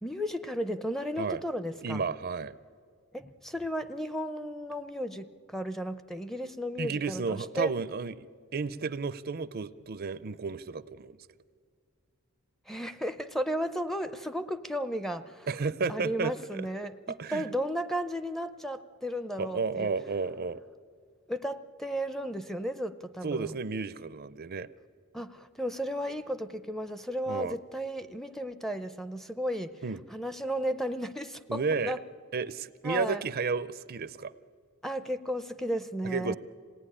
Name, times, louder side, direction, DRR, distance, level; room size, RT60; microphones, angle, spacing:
voice 1, 0.0-2.0 3.1-7.7 12.7-15.5 15.9-19.9 21.3-23.5 25.1-29.8 30.1-32.0 32.8-33.2 34.8-36.4, equal, ahead, 9 dB, 0.6 m, -34 dB
voice 2, 1.8-2.6 6.8-8.3 8.5-11.2 15.5-16.3 16.6-16.7 17.1-17.5 19.4-20.6 23.2-24.7 27.3-27.6 29.8-30.0 31.5-32.0 32.3-34.3 36.0-36.4, right 4 dB, 45° right, 15 dB, 0.5 m, -32 dB
26.0 x 18.0 x 9.9 m, 2.1 s
head